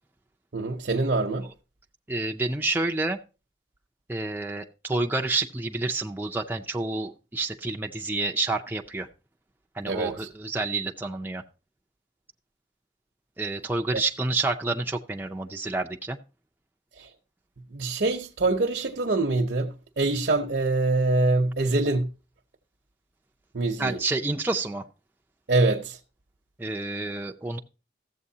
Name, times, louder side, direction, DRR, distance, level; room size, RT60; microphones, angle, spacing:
voice 1, 0.5-1.5 9.9-10.3 13.9-14.0 17.0-17.1 17.7-22.1 23.5-24.0 25.5-26.0, right 2 dB, 65° right, 0.7 m, -25 dB
voice 2, 2.1-3.2 4.1-9.1 9.7-11.4 13.4-16.2 23.8-24.8 26.6-27.6, right 3 dB, 10° right, 0.4 m, -29 dB
14.0 x 7.8 x 2.7 m
head